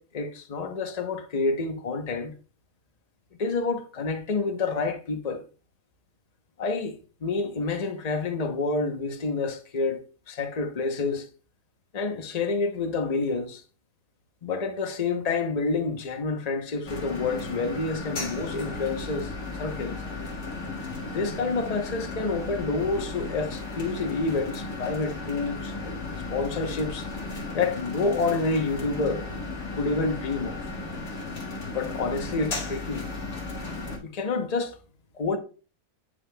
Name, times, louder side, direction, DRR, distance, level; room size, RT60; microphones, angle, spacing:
voice 1, 0.0-2.3 3.4-5.4 6.6-10.0 10.3-11.3 11.9-13.6 14.4-19.3 19.6-20.0 21.0-26.0 26.3-27.1 27.5-29.2 29.7-30.6 31.7-33.0 34.0-34.8 35.1-35.4, left 3 dB, 30° left, 0.8 m, -28 dB
sound 1, 16.9-34.0, left 3 dB, 75° left, 2.4 m, -35 dB
9.4 x 6.3 x 2.3 m
omnidirectional pair, 1.7 m